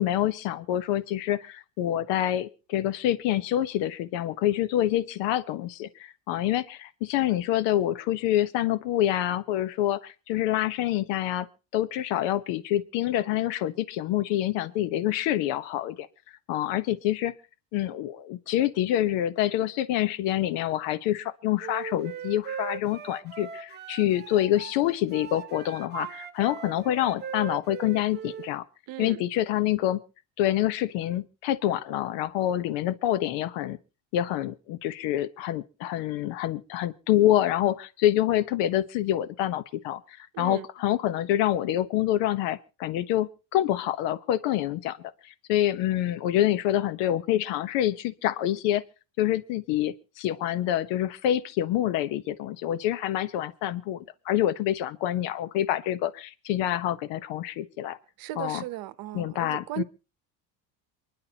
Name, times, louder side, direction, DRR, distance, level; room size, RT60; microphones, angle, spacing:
voice 1, 0.0-11.5 11.7-16.1 16.5-17.3 17.7-28.6 29.0-30.0 30.4-33.8 34.1-45.0 45.2-48.8 49.2-58.0 58.4-58.6 59.1-59.8, left 12 dB, 75° left, 1.1 m, -27 dB
Wind instrument woodwind instrument, 21.6-24.8 25.1-28.5, right 7 dB, 25° right, 1.2 m, -39 dB
voice 2, 28.9-29.2 40.3-40.7 58.2-59.8, right 16 dB, 50° right, 0.9 m, -36 dB
28.0 x 11.0 x 2.9 m
cardioid pair, 165°, 44 cm